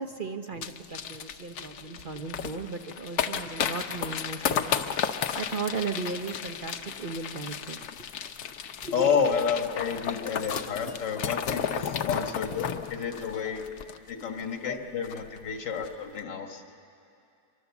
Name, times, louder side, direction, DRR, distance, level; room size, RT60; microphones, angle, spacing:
voice 1, 0.0-7.9 8.8-9.2, right 4 dB, 45° right, 6 dB, 0.6 m, -36 dB
sound 1, 0.6-14.4 14.7-14.8 15.0-15.4 15.7-15.9, left 8 dB, 65° left, 1.2 m, -33 dB
voice 2, 8.9-13.6 14.1-16.6, left 6 dB, 80° left, 4 dB, 2.2 m, -30 dB
24.5 x 24.0 x 7.1 m, 2.6 s
omnidirectional pair, 1.9 m